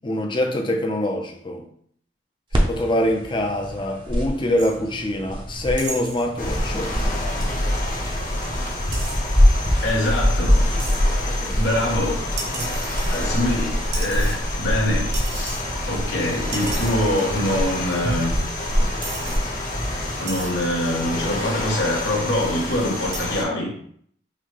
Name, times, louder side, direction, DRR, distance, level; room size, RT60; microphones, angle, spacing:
voice 1, 0.0-1.7 2.5-6.9 11.3-11.8, left 1 dB, 30° left, 0.5 m, -25 dB
sound 1, 2.5-20.1, equal, 30° right, 0.6 m, -29 dB
sound 2, 4.6-4.8 5.8-6.2 8.9-9.2 10.8-11.0 12.4-13.5 13.9-14.7 15.1-15.6 16.0-16.1 16.5-17.0 17.9-18.0 18.6-18.7 19.0-19.4 20.3-20.5 21.4-21.7 23.1-23.2, right 3 dB, 85° right, 1.2 m, -34 dB
sound 3, 6.4-23.4, left 1 dB, 50° left, 1.1 m, -25 dB
voice 2, 9.8-10.8 11.6-12.3 13.1-15.6 15.9-18.3 20.2-23.7, left 1 dB, 85° left, 1.3 m, -24 dB
5.6 x 2.2 x 3.2 m
head